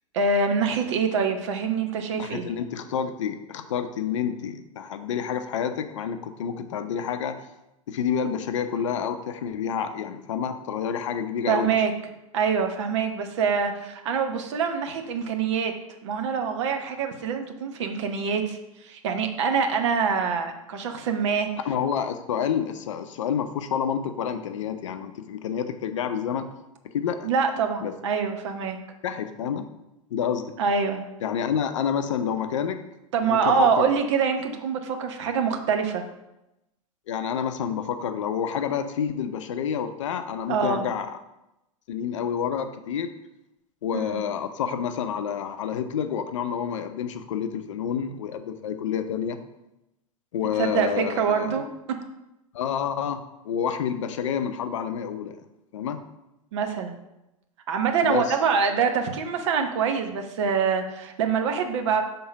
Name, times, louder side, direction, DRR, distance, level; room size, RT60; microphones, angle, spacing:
voice 1, 0.1-2.5 11.5-11.9 12.3-15.7 16.0-18.6 18.8-21.5 27.2-28.8 30.6-31.0 33.1-36.0 40.5-40.8 43.9-44.2 50.6-51.7 56.5-57.0 57.7-62.0, right 6 dB, 55° right, 5 dB, 0.8 m, -25 dB
voice 2, 2.1-7.4 7.9-11.8 21.6-26.5 26.9-27.3 27.8-27.9 29.0-29.7 30.1-30.5 31.2-32.8 33.2-33.9 37.1-41.1 41.9-43.1 43.8-49.4 50.3-51.6 52.5-53.2 53.4-55.4 55.7-56.0 58.0-58.3, left 8 dB, 55° left, 9 dB, 0.5 m, -28 dB
5.5 x 3.7 x 5.6 m, 0.93 s
figure-of-eight pair, 90°, 18 cm